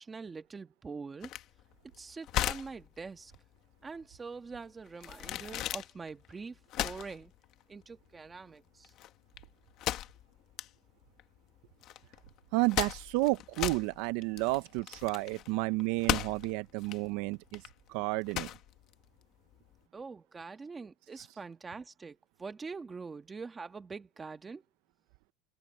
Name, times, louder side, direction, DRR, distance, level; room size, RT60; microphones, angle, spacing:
voice 1, 0.0-1.3 2.0-3.3 3.8-7.3 7.7-8.9 19.9-24.6, right 4 dB, 10° right, 1.4 m, -44 dB
sound 1, 1.2-19.8, left 13 dB, 35° left, 1.4 m, -38 dB
voice 2, 12.5-18.5, right 21 dB, 55° right, 0.5 m, -31 dB
supercardioid pair, 170°, 0 cm